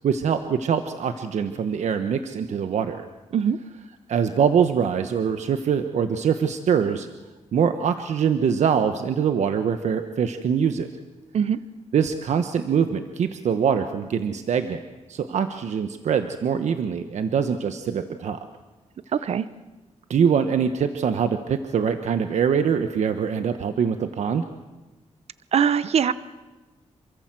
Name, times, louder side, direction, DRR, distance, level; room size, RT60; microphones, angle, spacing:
voice 1, 0.0-3.1 4.1-7.1 7.5-10.9 11.9-14.8 15.1-18.4 20.1-24.5, right 7 dB, 75° right, 8 dB, 1.2 m, -23 dB
voice 2, 19.1-19.5 25.5-26.1, right 7 dB, 60° right, 15 dB, 0.8 m, -21 dB
28.0 x 24.0 x 7.6 m, 1.2 s
wide cardioid pair, 165°, 12 cm